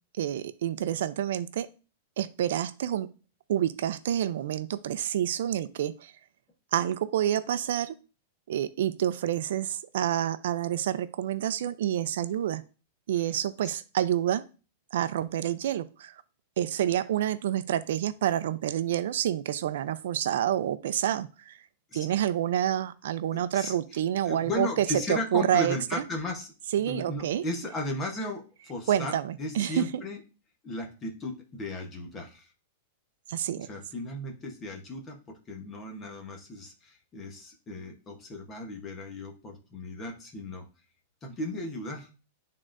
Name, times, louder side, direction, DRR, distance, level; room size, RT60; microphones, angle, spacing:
voice 1, 0.1-1.7 2.2-3.1 3.5-6.1 6.7-8.0 8.5-12.6 13.1-14.5 14.9-16.2 16.6-21.6 21.9-26.0 26.7-27.4 28.9-30.0 33.3-33.7, right 11 dB, 70° right, 14 dB, 0.4 m, -28 dB
voice 2, 23.3-23.7 24.3-26.5 26.9-30.2 30.6-32.5 33.5-40.7 41.2-42.1, left 2 dB, 15° left, 3 dB, 1.0 m, -36 dB
11.0 x 3.7 x 2.5 m, 0.33 s
supercardioid pair, 170°, 0 cm